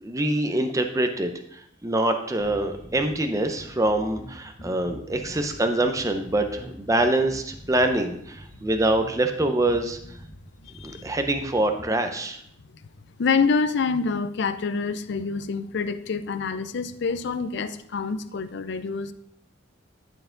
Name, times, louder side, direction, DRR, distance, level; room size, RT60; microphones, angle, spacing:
voice 1, 0.0-10.0 10.8-12.4, right 1 dB, 15° right, 6 dB, 0.6 m, -25 dB
sound 1, 2.4-12.0, equal, 40° left, 1.5 m, -45 dB
voice 2, 10.6-11.1 13.2-19.1, left 5 dB, 65° left, 12 dB, 0.5 m, -26 dB
10.0 x 4.6 x 3.8 m, 0.70 s
head